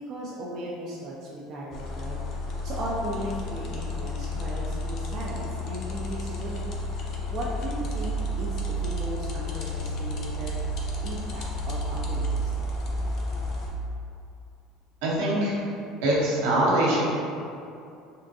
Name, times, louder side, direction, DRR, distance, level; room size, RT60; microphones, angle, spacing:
voice 1, 0.1-6.9 7.3-10.6 11.0-12.8, right 1 dB, 50° right, -5 dB, 0.4 m, -36 dB
sound 1, 1.7-13.7, equal, 55° left, 0.5 m, -31 dB
voice 2, 15.0-15.5 16.0-17.0, right 1 dB, 80° right, -6 dB, 0.8 m, -23 dB
3.5 x 2.1 x 2.7 m, 2.5 s
supercardioid pair, 85°, 0 cm